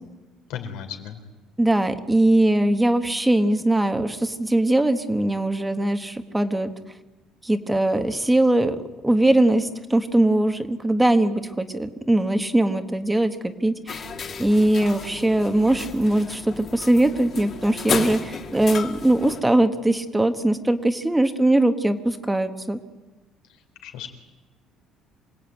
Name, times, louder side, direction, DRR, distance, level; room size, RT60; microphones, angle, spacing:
voice 1, 0.5-1.2 23.5-24.1, left 8 dB, 85° left, 5 dB, 4.0 m, -36 dB
voice 2, 1.6-6.7 7.4-8.8 9.0-14.0 14.4-22.8, right 1 dB, 5° right, 8 dB, 1.2 m, -21 dB
sound 1, 13.9-19.4, left 6 dB, 35° left, 2.0 m, -33 dB
27.0 x 18.5 x 9.0 m, 1.2 s
cardioid pair, 160°, 0 cm